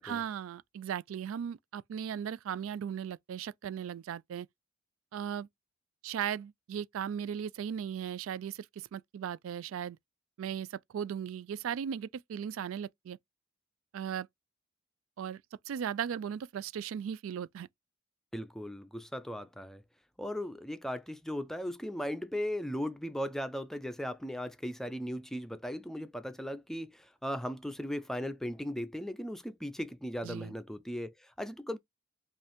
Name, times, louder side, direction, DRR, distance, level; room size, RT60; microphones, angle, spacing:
voice 1, 0.0-4.5 5.1-5.5 6.0-10.0 10.4-13.2 13.9-14.3 15.2-15.4 15.7-17.7 30.2-30.5, right 8 dB, 85° right, 0.3 m, -37 dB
voice 2, 18.3-19.8 20.2-31.8, equal, ahead, 0.4 m, -37 dB
5.2 x 2.5 x 3.5 m
head